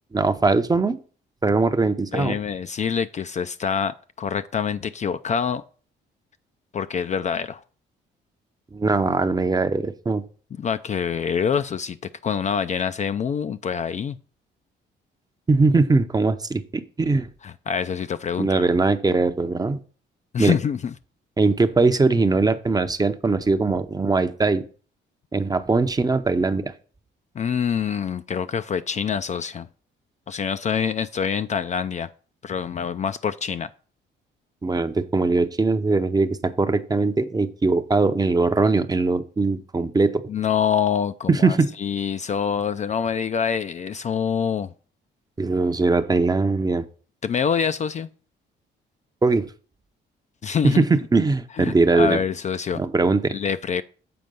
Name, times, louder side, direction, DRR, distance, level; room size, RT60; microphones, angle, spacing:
voice 1, 0.1-1.0 1.4-2.4 8.7-10.2 15.5-17.3 18.4-19.8 20.4-20.5 21.4-24.6 25.3-26.7 34.6-40.2 41.3-41.7 45.4-46.8 49.2-49.5 50.6-52.2 52.7-53.4, right 3 dB, 20° right, 0.6 m, -21 dB
voice 2, 2.1-5.6 6.7-7.6 10.6-12.0 12.2-14.2 17.4-18.7 20.3-20.9 27.4-29.7 30.3-32.1 32.4-33.7 40.3-44.7 47.2-48.1 50.4-50.8 51.6-52.8 53.3-53.8, left 7 dB, 35° left, 0.4 m, -25 dB
7.8 x 4.3 x 5.3 m
cardioid pair, 90°, 20 cm